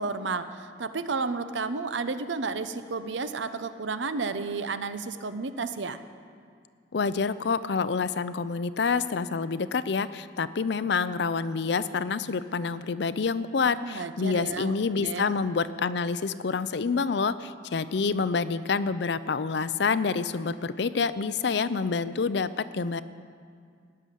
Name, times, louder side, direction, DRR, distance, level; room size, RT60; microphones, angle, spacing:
voice 1, 0.0-6.0 13.8-15.3, right 4 dB, 75° right, 11 dB, 0.7 m, -32 dB
voice 2, 6.9-23.0, left 5 dB, 60° left, 14 dB, 0.5 m, -27 dB
17.5 x 6.9 x 10.0 m, 2.2 s
head